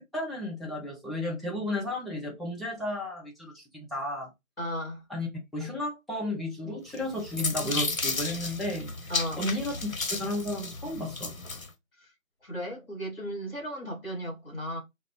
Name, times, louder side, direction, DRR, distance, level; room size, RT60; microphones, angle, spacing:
voice 1, 0.1-4.3 5.1-11.3, left 1 dB, ahead, 0.6 m, -33 dB
voice 2, 4.6-5.0 9.1-9.5 12.0-12.1 12.4-14.8, equal, 45° left, 2.3 m, -35 dB
sound 1, 6.9-11.7, left 3 dB, 85° left, 1.0 m, -33 dB
4.7 x 2.0 x 3.0 m
figure-of-eight pair, 175°, 40 cm